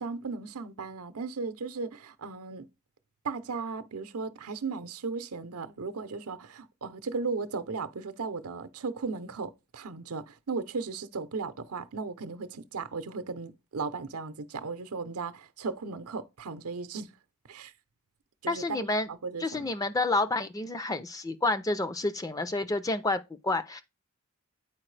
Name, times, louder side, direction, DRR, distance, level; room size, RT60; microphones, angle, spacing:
voice 1, 0.0-2.7 3.2-17.1 17.5-17.7 18.4-19.7, right 4 dB, 80° right, 0.7 m, -36 dB
voice 2, 18.5-19.1 19.4-23.8, left 2 dB, 15° left, 0.4 m, -29 dB
8.7 x 4.5 x 3.2 m
head